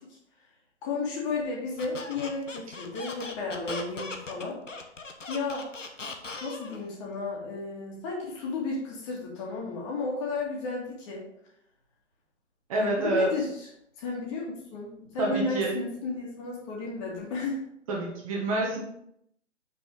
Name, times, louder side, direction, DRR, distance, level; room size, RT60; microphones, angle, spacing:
voice 1, 0.8-4.6 5.3-5.7 6.4-11.3 12.8-13.7 14.0-17.6, left 3 dB, 25° left, -3 dB, 2.5 m, -33 dB
Squeak, 1.8-6.8, left 3 dB, 80° left, 1.3 m, -39 dB
voice 2, 12.7-13.3 15.2-15.8 17.9-18.8, right 1 dB, 30° right, -2 dB, 1.6 m, -27 dB
7.4 x 6.1 x 3.9 m, 0.74 s
figure-of-eight pair, 140°, 37 cm